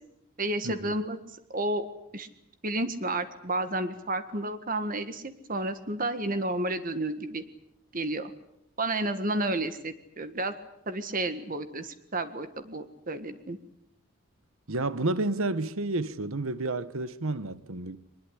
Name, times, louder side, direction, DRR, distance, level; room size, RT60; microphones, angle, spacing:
voice 1, 0.4-1.2 1.5-1.9 2.1-2.3 2.6-7.4 7.9-8.3 8.8-10.5 10.9-13.6, right 2 dB, 40° right, 1.7 m, -31 dB
voice 2, 14.7-18.0, right 2 dB, 70° right, 1.3 m, -30 dB
24.0 x 20.5 x 10.0 m
head